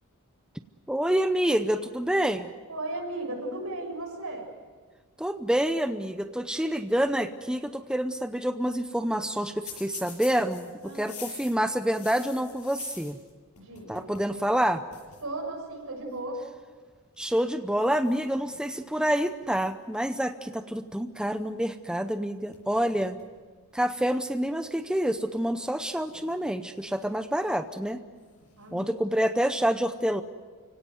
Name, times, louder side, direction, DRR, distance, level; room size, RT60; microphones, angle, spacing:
voice 1, 0.9-2.5 5.2-13.2 13.9-14.9 17.2-23.2 23.7-28.0 28.7-30.2, equal, 5° right, 9 dB, 0.7 m, -27 dB
voice 2, 2.7-4.5 10.8-11.2 13.6-14.1 15.2-16.4 28.6-29.2, right 2 dB, 75° right, 1 dB, 6.9 m, -36 dB
sound 1, 9.7-13.3 13.6-14.3 14.6-14.7 14.9-15.2 16.1-16.4 17.1-17.5 18.0-19.1 22.1-22.2 22.5-23.4 23.8-23.9 24.8-24.9 26.0-26.9 28.2-28.7, left 6 dB, 85° left, 7.5 m, -47 dB
29.5 x 17.5 x 7.9 m, 1.4 s
head